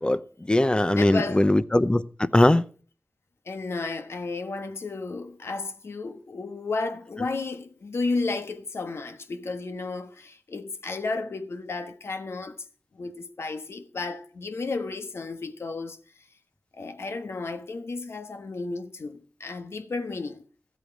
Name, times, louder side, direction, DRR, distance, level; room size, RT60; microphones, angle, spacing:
voice 1, 0.0-2.7, left 1 dB, 20° left, 0.7 m, -21 dB
voice 2, 1.0-1.5 3.4-12.7 12.9-16.0 16.7-20.4, left 3 dB, 75° left, 1.4 m, -33 dB
14.0 x 8.3 x 6.2 m
wide cardioid pair, 65°, 4 cm